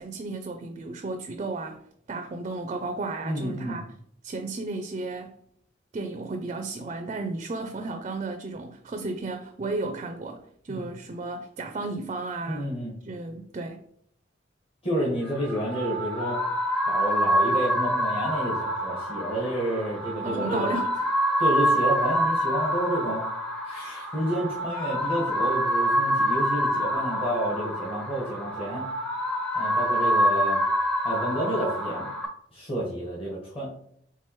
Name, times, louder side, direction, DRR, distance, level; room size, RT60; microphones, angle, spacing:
voice 1, 0.0-1.8 2.1-3.9 4.2-5.4 5.9-12.7 13.0-13.8 20.2-21.0, right 3 dB, 35° right, 6 dB, 0.4 m, -33 dB
voice 2, 3.2-3.8 10.7-10.9 12.5-12.9 14.8-16.4 16.9-20.6 21.4-23.2 23.6-28.8 29.5-30.6 31.0-32.1 32.5-33.7, equal, 30° left, -6 dB, 1.2 m, -30 dB
sound 1, 15.3-32.3, equal, 5° left, 0.6 m, -26 dB
4.5 x 3.5 x 3.0 m, 0.67 s
head